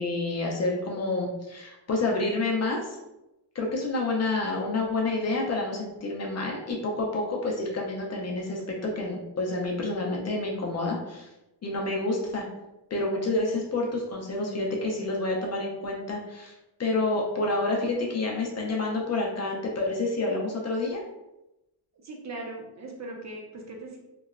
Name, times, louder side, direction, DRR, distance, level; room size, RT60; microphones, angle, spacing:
voice 1, 0.0-3.0 3.5-11.3 11.6-12.4 12.9-16.5 16.8-21.0, left 2 dB, 40° left, -1 dB, 0.4 m, -28 dB
voice 2, 22.0-24.0, right 2 dB, 40° right, 0 dB, 0.5 m, -39 dB
2.9 x 2.1 x 2.4 m, 0.96 s
wide cardioid pair, 140°, 44 cm